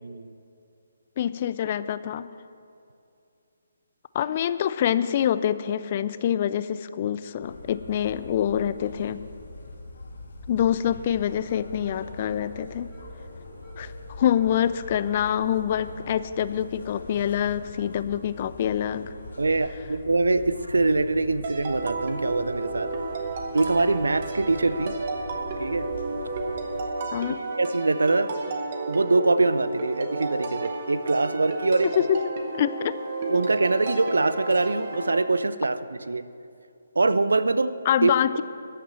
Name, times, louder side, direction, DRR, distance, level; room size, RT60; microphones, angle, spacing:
voice 1, 0.0-0.4 19.4-22.9 23.5-25.0 25.6-25.9 27.6-28.3 28.9-31.9 33.3-35.8 36.1-36.2 37.0-37.8 38.0-38.1, right 3 dB, 70° right, 14 dB, 0.5 m, -23 dB
voice 2, 1.2-2.3 4.1-9.2 10.5-12.9 13.8-13.9 14.2-19.0 27.1-27.4 31.8-32.2 32.6-33.0 37.9-38.4, left 10 dB, 35° left, 14 dB, 0.4 m, -25 dB
sound 1, 7.4-26.8, left 2 dB, 60° left, 1.7 m, -43 dB
sound 2, 11.3-16.3, equal, 10° right, 2.6 m, -49 dB
sound 3, 21.4-35.2, right 3 dB, 40° right, 1.5 m, -32 dB
14.0 x 6.7 x 7.6 m, 2.6 s
figure-of-eight pair, 140°, 0 cm